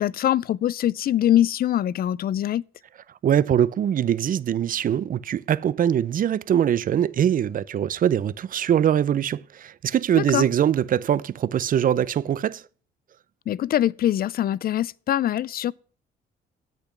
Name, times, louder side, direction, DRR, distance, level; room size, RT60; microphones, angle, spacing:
voice 1, 0.0-2.6 10.2-10.4 13.5-15.7, left 12 dB, 50° left, 0.4 m, -23 dB
voice 2, 3.2-12.6, right 9 dB, 45° right, 0.5 m, -22 dB
8.1 x 6.6 x 5.8 m
cardioid pair, 90°, 20 cm